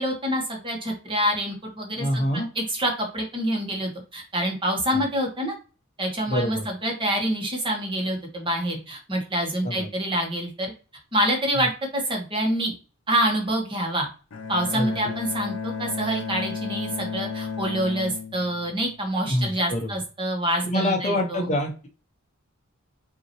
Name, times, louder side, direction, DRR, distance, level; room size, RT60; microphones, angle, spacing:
voice 1, 0.0-5.5 6.0-10.7 11.1-12.7 13.1-14.1 14.5-15.5 15.8-21.5, equal, 25° right, 1 dB, 1.3 m, -26 dB
voice 2, 2.0-2.5 4.9-5.0 6.3-6.7 9.6-9.9 14.7-15.1 19.3-19.9 20.6-21.9, left 1 dB, 30° left, 3 dB, 0.7 m, -26 dB
Bowed string instrument, 14.3-19.3, left 5 dB, 70° left, 0.5 m, -33 dB
5.6 x 2.8 x 3.0 m, 0.35 s
head